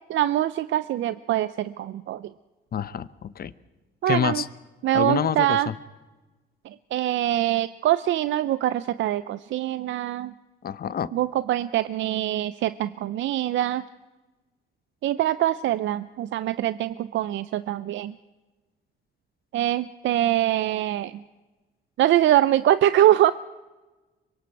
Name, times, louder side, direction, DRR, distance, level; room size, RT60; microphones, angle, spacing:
voice 1, 0.1-2.3 4.0-4.4 4.8-5.7 6.6-10.3 11.1-13.8 15.0-18.1 19.5-21.2 22.0-23.3, right 13 dB, 70° right, 14 dB, 0.5 m, -23 dB
voice 2, 2.7-3.5 4.1-4.5 4.9-5.7 10.6-11.1, left 8 dB, 50° left, 15 dB, 0.9 m, -27 dB
25.5 x 23.0 x 4.7 m, 1.2 s
cardioid pair, 90°, 20 cm